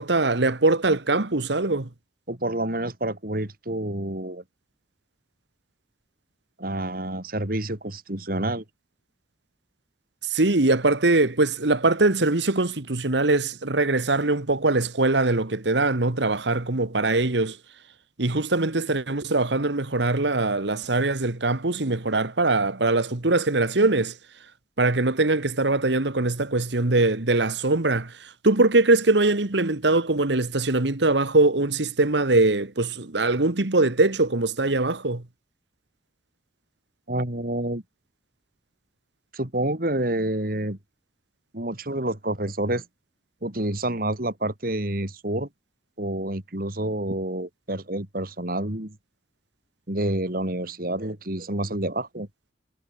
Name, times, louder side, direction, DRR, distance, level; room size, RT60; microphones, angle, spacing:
voice 1, 0.0-1.9 10.3-17.6 18.2-24.2 24.8-35.2, right 2 dB, 75° right, 1.6 m, -22 dB
voice 2, 2.3-4.4 6.6-8.6 37.1-37.8 39.3-40.8 41.5-42.8 43.4-45.5 46.0-49.0 49.9-52.3, right 1 dB, 50° right, 3.1 m, -28 dB
head